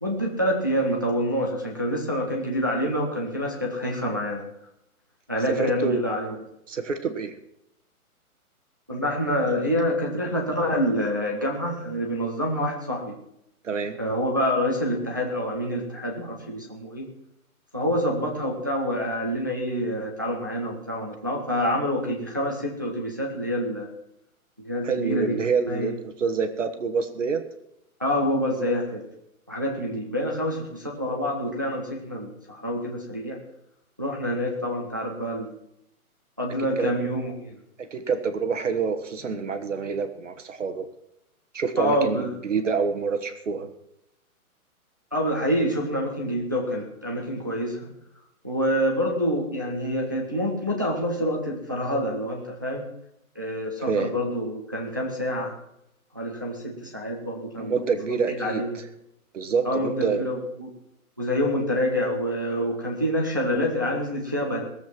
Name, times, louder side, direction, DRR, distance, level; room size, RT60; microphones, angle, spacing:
voice 1, 0.0-4.5 5.3-6.3 8.9-13.2 14.0-17.1 17.7-23.9 24.6-25.3 25.7-25.9 28.0-29.0 29.5-33.4 34.0-35.5 36.4-37.6 41.8-42.3 45.1-47.9 48.4-52.8 53.4-55.5 56.1-57.8 58.3-58.8 59.6-60.7 61.2-64.6, equal, 15° right, -1 dB, 0.6 m, -27 dB
voice 2, 5.6-6.0 6.7-7.4 13.6-14.0 24.8-27.4 36.8-36.9 37.8-40.8 41.5-43.7 53.9-54.2 57.6-58.9 59.3-60.3, right 5 dB, 55° right, 8 dB, 1.4 m, -27 dB
18.5 x 7.8 x 6.0 m, 0.80 s
hypercardioid pair, 180°, 44 cm